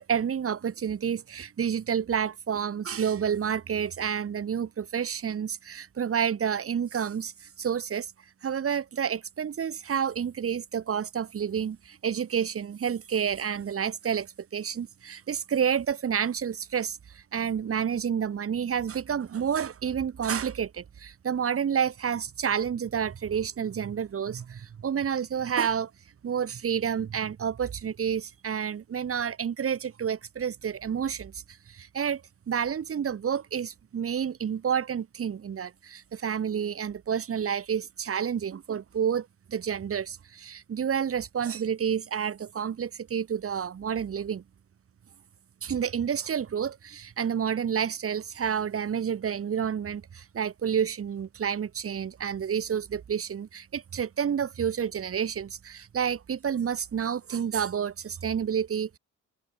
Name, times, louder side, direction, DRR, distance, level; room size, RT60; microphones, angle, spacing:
voice 1, 0.0-8.1 8.4-25.9 26.2-32.2 32.5-44.4 45.6-59.0, right 8 dB, 50° right, 2.5 m, -29 dB
cardioid pair, 90°, 30 cm